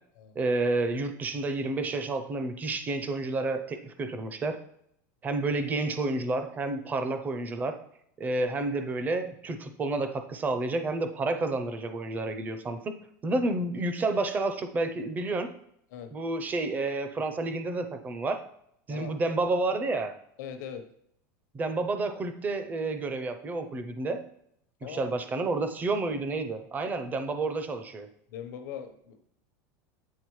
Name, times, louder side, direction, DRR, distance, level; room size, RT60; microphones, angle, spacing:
voice 1, 0.4-4.6 5.2-7.8 8.2-12.9 13.2-15.5 16.1-18.4 18.9-20.1 21.5-24.2 24.8-28.1, right 2 dB, 15° right, 8 dB, 0.5 m, -30 dB
voice 2, 20.4-20.8 24.8-25.1 28.3-29.2, left 8 dB, 80° left, 7 dB, 0.9 m, -40 dB
8.3 x 3.9 x 3.1 m, 0.72 s
supercardioid pair, 155°, 10 cm